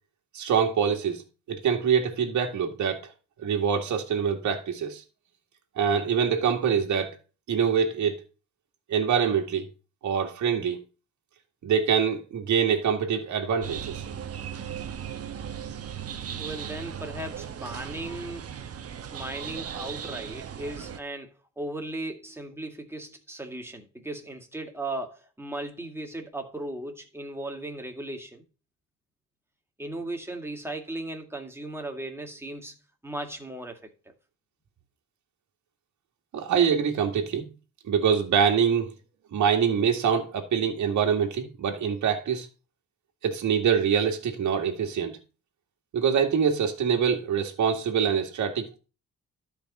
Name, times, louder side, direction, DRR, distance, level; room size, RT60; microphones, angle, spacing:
voice 1, 0.3-1.2 1.5-3.1 3.4-5.0 5.8-7.2 7.5-8.2 8.9-9.7 10.0-10.8 11.6-14.0 36.3-37.5 37.9-38.9 39.3-42.5 43.2-45.2 45.9-48.8, right 7 dB, 70° right, 2.0 m, -25 dB
sound 1, 13.6-21.0, right 8 dB, 50° right, 1.2 m, -37 dB
voice 2, 16.4-18.5 19.1-28.4 29.8-32.8 33.0-33.9, right 1 dB, 10° right, 2.2 m, -37 dB
12.5 x 5.3 x 4.2 m
cardioid pair, 90°, 30 cm